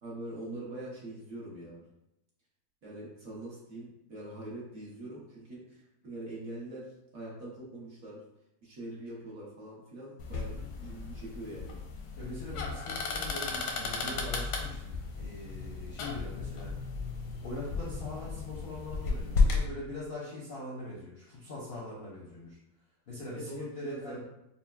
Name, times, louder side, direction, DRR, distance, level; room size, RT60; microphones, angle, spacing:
voice 1, 0.0-1.8 2.8-6.9 7.1-8.2 8.6-11.8 23.3-24.2, right 1 dB, 55° right, -5 dB, 1.3 m, -43 dB
sound 1, 10.2-19.7, left 4 dB, 85° left, 1.3 m, -33 dB
voice 2, 12.2-16.7 17.4-22.6 23.1-24.2, left 1 dB, 55° left, -7 dB, 0.7 m, -42 dB
5.5 x 2.1 x 2.3 m, 0.86 s
omnidirectional pair, 1.9 m